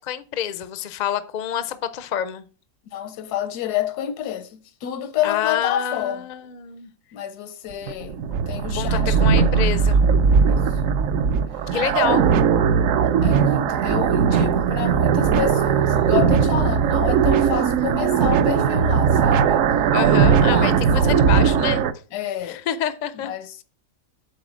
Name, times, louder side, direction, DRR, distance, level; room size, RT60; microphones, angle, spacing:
voice 1, 0.0-2.4 5.2-6.9 8.7-10.0 11.7-12.2 19.9-21.8 22.4-23.3, left 10 dB, 75° left, 0.4 m, -27 dB
voice 2, 2.9-6.2 7.1-8.1 8.5-9.2 10.4-10.7 13.0-19.6 20.4-20.8 22.1-22.6 23.1-23.6, left 10 dB, 90° left, 1.3 m, -29 dB
sound 1, 7.7-21.9, right 6 dB, 65° right, 0.9 m, -18 dB
7.6 x 3.8 x 6.1 m
omnidirectional pair, 1.6 m